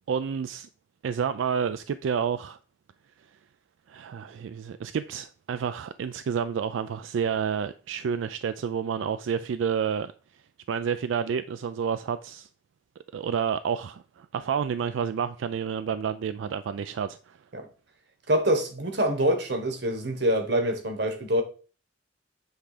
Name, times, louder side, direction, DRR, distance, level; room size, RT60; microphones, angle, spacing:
voice 1, 0.1-0.7 1.0-2.6 3.9-10.1 10.7-12.5 13.1-17.4, right 7 dB, 90° right, 0.3 m, -29 dB
voice 2, 18.3-21.4, right 1 dB, 65° right, 1.3 m, -25 dB
8.0 x 3.6 x 4.9 m
head